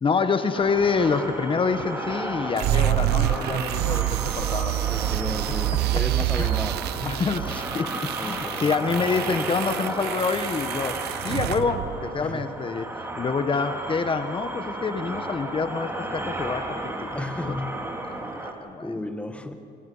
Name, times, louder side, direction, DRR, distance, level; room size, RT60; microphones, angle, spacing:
voice 1, 0.0-4.7 6.4-6.5 7.1-17.5 18.1-19.0, left 5 dB, 30° left, 9 dB, 1.3 m, -27 dB
sound 1, 0.5-18.5, right 1 dB, 15° right, 3.0 m, -34 dB
sound 2, 2.6-12.5, right 15 dB, 75° right, 0.7 m, -27 dB
voice 2, 4.8-7.2 8.2-8.9 12.2-12.4 17.0-17.8 18.4-18.5 18.8-19.5, left 1 dB, 5° left, 7 dB, 1.8 m, -34 dB
28.0 x 26.5 x 5.6 m, 2.5 s
cardioid pair, 110°, 17 cm